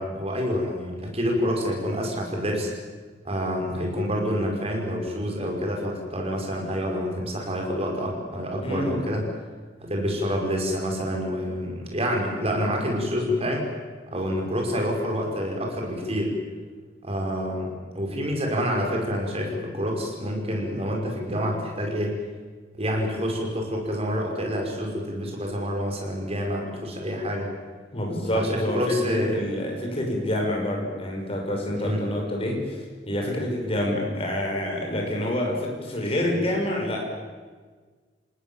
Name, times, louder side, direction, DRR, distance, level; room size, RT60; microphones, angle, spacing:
voice 1, 0.0-2.7 3.2-9.3 9.8-13.6 14.1-16.3 17.0-22.2 22.8-27.5 28.3-29.5 31.8-32.0, equal, 35° right, 1 dB, 5.7 m, -27 dB
voice 2, 8.6-9.0 27.9-32.8 33.1-37.1, left 1 dB, 35° left, 0 dB, 6.3 m, -27 dB
28.0 x 19.0 x 7.3 m, 1.5 s
head